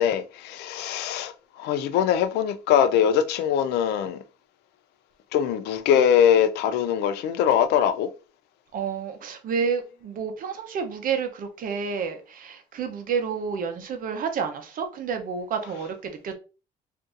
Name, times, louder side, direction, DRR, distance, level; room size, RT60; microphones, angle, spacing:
voice 1, 0.0-4.2 5.3-8.1, left 9 dB, 80° left, 0.4 m, -22 dB
voice 2, 8.7-16.3, right 6 dB, 55° right, 0.7 m, -30 dB
3.8 x 2.6 x 2.5 m
cardioid pair, 110°, 17 cm